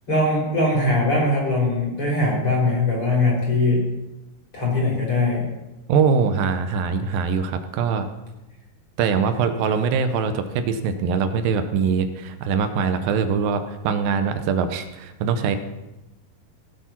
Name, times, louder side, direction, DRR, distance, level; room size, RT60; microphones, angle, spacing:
voice 1, 0.1-3.9 4.5-5.5, left 2 dB, 35° left, -3 dB, 5.2 m, -21 dB
voice 2, 5.9-8.1 9.0-15.6, right 6 dB, 75° right, 9 dB, 2.5 m, -22 dB
17.5 x 7.6 x 5.9 m, 1.0 s
omnidirectional pair, 4.3 m